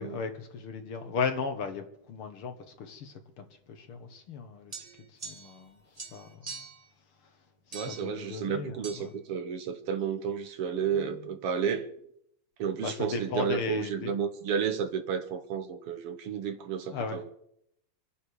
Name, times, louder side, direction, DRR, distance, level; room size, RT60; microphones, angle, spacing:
voice 1, 0.0-4.7 5.2-5.8 6.1-6.3 7.9-9.1 12.8-14.1 16.9-17.2, left 5 dB, 55° left, 1.6 m, -36 dB
sound 1, 4.7-5.7 6.0-6.9 7.7-8.1 8.8-9.0, right 4 dB, 20° right, 1.0 m, -43 dB
voice 2, 7.7-11.9 12.6-17.3, right 7 dB, 60° right, 1.6 m, -32 dB
25.5 x 10.5 x 4.8 m
omnidirectional pair, 3.7 m